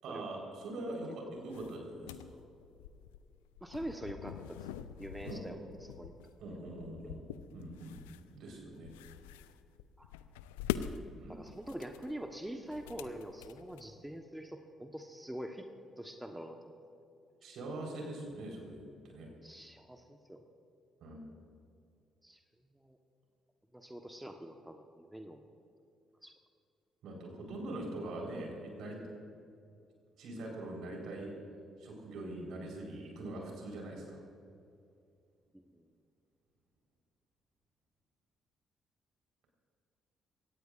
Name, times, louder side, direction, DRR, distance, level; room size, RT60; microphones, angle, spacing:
voice 1, 0.0-2.4 5.2-5.5 6.4-8.0 8.3-8.9 11.1-11.5 17.4-19.3 21.0-21.2 27.0-29.0 30.2-31.3 31.8-34.2, right 1 dB, 60° right, 0 dB, 4.5 m, -43 dB
sound 1, 1.4-14.1, left 10 dB, 75° left, 0.4 m, -45 dB
voice 2, 3.6-4.7 5.0-6.2 10.0-10.1 11.3-15.7 16.0-16.7 19.4-20.4 22.2-22.4 22.7-23.0 23.7-25.4 26.2-26.3 35.5-35.8, right 1 dB, 5° right, 4 dB, 1.3 m, -44 dB
23.5 x 18.0 x 2.6 m, 2.5 s
figure-of-eight pair, 45°, 0 cm